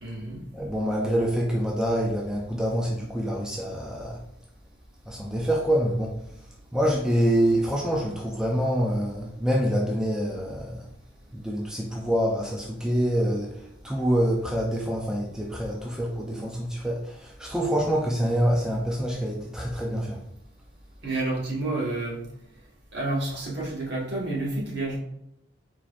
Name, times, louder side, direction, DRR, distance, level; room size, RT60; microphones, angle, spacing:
voice 1, 0.0-0.4 21.0-22.2 22.9-25.0, right 2 dB, 60° right, -4 dB, 1.6 m, -29 dB
voice 2, 0.5-4.2 5.1-6.2 6.7-10.9 11.3-20.2, equal, 5° right, -2 dB, 0.5 m, -26 dB
4.4 x 4.2 x 2.5 m, 0.81 s
head